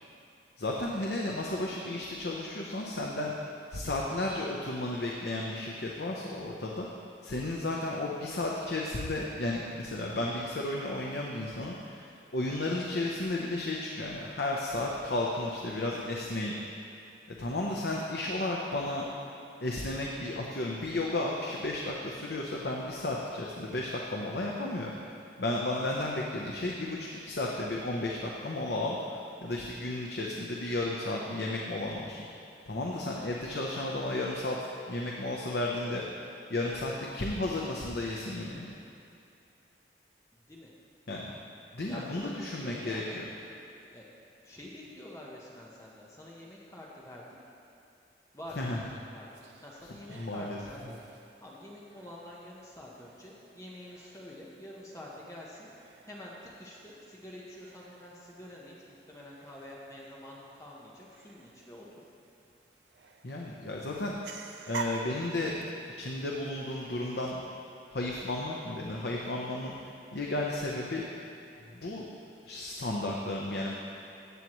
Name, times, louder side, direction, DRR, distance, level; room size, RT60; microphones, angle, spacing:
voice 1, 0.6-3.3 3.7-6.9 7.2-16.5 17.4-19.1 19.6-24.9 25.4-32.3 32.7-34.6 34.9-36.0 36.5-38.7 41.1-41.3 41.7-43.3 48.6-48.8 50.1-50.6 50.8-50.9 63.2-64.2 64.7-65.6 66.0-67.4 67.9-69.7 70.1-71.0 71.7-72.0 72.4-73.8, left 2 dB, 75° left, -2 dB, 0.8 m, -33 dB
voice 2, 40.3-40.7 41.8-43.3 43.9-44.1 44.4-47.3 48.3-50.8 51.4-55.7 56.0-62.1, left 1 dB, 15° left, -4 dB, 1.0 m, -47 dB
sound 1, 49.3-67.4, right 4 dB, 85° right, 0.7 m, -49 dB
15.0 x 8.2 x 3.1 m, 2.7 s
head